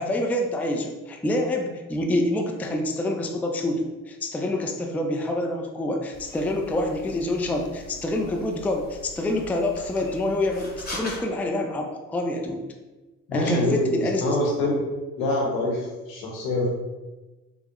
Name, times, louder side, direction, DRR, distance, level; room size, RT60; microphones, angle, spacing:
voice 1, 0.0-12.6 13.3-14.4, left 1 dB, 5° left, 2 dB, 0.3 m, -27 dB
sound 1, 6.1-11.2, equal, 25° left, 1.0 m, -41 dB
voice 2, 13.3-14.8 15.2-16.7, left 1 dB, 80° left, -2 dB, 0.9 m, -25 dB
3.5 x 2.1 x 2.8 m, 1.2 s
hypercardioid pair, 50°, 36 cm